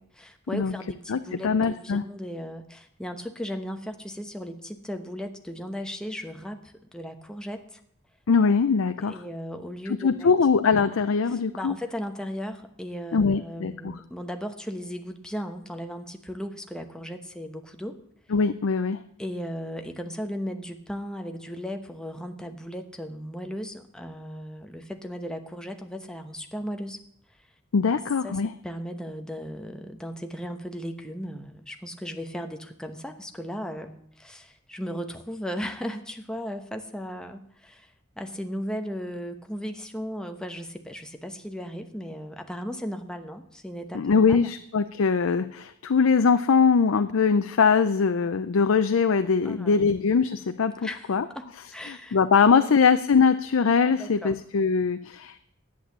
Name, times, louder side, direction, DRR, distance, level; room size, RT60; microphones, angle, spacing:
voice 1, 0.0-7.8 9.0-10.3 11.3-18.0 19.2-27.0 27.9-44.5 49.4-49.9 50.8-52.8 53.9-54.3, equal, 5° left, 5 dB, 0.9 m, -36 dB
voice 2, 1.1-2.0 8.3-9.2 9.9-11.7 13.1-13.9 18.3-19.0 27.7-28.5 43.9-51.3 51.9-55.4, left 5 dB, 80° left, 10 dB, 0.5 m, -22 dB
11.0 x 8.5 x 7.3 m, 0.71 s
head